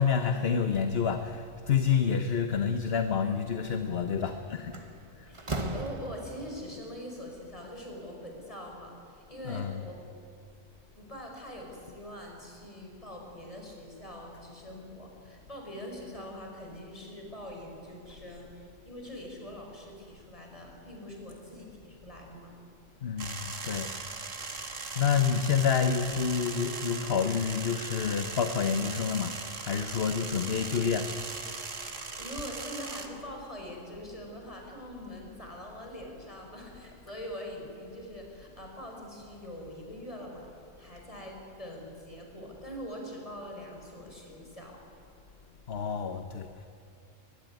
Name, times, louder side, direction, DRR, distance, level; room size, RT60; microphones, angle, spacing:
voice 1, 0.0-4.7 9.5-9.7 23.0-23.9 25.0-29.3 29.6-31.1 45.7-46.5, left 7 dB, 55° left, 8 dB, 1.2 m, -28 dB
Slam, 4.1-4.3 4.7-6.6, right 2 dB, 25° right, 1.5 m, -36 dB
voice 2, 5.3-10.0 10.9-22.5 31.8-40.5 40.8-44.8, equal, 25° left, 1 dB, 5.3 m, -43 dB
sound 1, 23.2-33.1, right 4 dB, 85° right, 2.2 m, -39 dB
23.0 x 21.0 x 9.3 m, 2.6 s
omnidirectional pair, 1.3 m